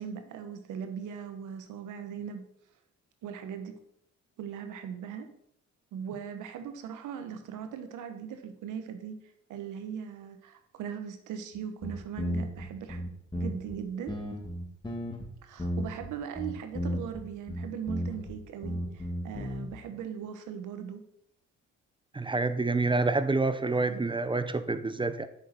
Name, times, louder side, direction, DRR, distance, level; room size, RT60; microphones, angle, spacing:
voice 1, 0.0-2.4 3.2-3.8 4.4-5.3 5.9-9.2 9.5-13.0 13.3-14.2 15.4-21.0 23.9-24.0, right 7 dB, 85° right, 8 dB, 1.1 m, -39 dB
sound 1, 11.5-11.6 11.8-13.7 14.1-15.3 15.6-16.1 16.3-17.2 17.5-18.3 18.6-19.7, equal, 15° left, 2.5 m, -33 dB
voice 2, 22.1-25.3, right 3 dB, 15° right, 12 dB, 0.6 m, -27 dB
8.3 x 6.4 x 4.4 m, 0.73 s
cardioid pair, 90°, 30 cm